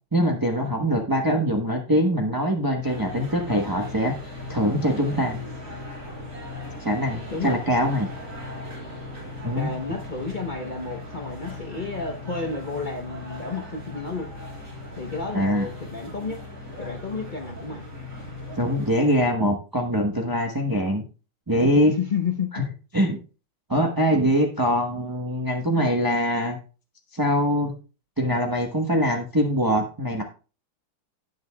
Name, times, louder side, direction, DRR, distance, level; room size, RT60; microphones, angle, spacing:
voice 1, 0.1-4.2 4.5-5.4 6.8-8.1 9.4-9.7 15.3-15.7 18.6-21.0 21.5-21.9 22.5-22.6 22.9-23.2 23.7-26.6 27.1-27.7 28.2-30.2, equal, 20° right, 1 dB, 0.5 m, -23 dB
sound 1, 2.8-18.9, left 2 dB, 35° right, 4.4 m, -38 dB
voice 2, 9.6-14.3 14.9-16.4 16.8-17.8 22.0-22.6, left 4 dB, 50° left, 4 dB, 0.5 m, -31 dB
18.0 x 6.8 x 2.3 m, 0.34 s
omnidirectional pair, 2.3 m